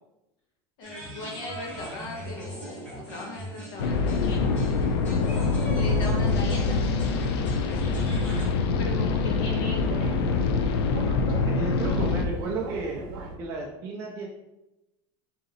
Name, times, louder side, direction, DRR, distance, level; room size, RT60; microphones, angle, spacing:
voice 1, 0.8-4.5 5.7-7.0 8.8-10.2, left 1 dB, 50° left, -1 dB, 1.1 m, -38 dB
sound 1, 0.8-8.5, equal, 10° left, 1.4 m, -39 dB
sound 2, 3.8-12.3, left 4 dB, 80° left, 0.5 m, -25 dB
sound 3, 8.3-13.4, right 3 dB, 55° right, 0.7 m, -40 dB
voice 2, 8.7-9.1 11.5-13.0 13.4-14.3, right 3 dB, 20° right, -3 dB, 0.4 m, -34 dB
3.9 x 2.9 x 3.8 m, 0.97 s
supercardioid pair, 175°, 13 cm